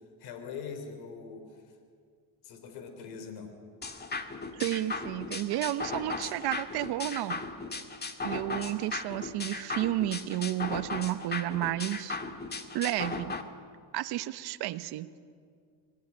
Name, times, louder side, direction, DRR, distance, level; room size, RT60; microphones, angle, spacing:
voice 1, 0.2-1.6 2.4-3.5, left 6 dB, 80° left, 7 dB, 3.6 m, -42 dB
sound 1, 3.8-13.4, left 3 dB, 25° left, 1.9 m, -37 dB
voice 2, 4.5-7.4 8.2-12.2 12.7-13.4 13.9-15.1, right 14 dB, 80° right, 13 dB, 1.1 m, -32 dB
25.5 x 18.0 x 9.8 m, 2.1 s
cardioid pair, 100°, 39 cm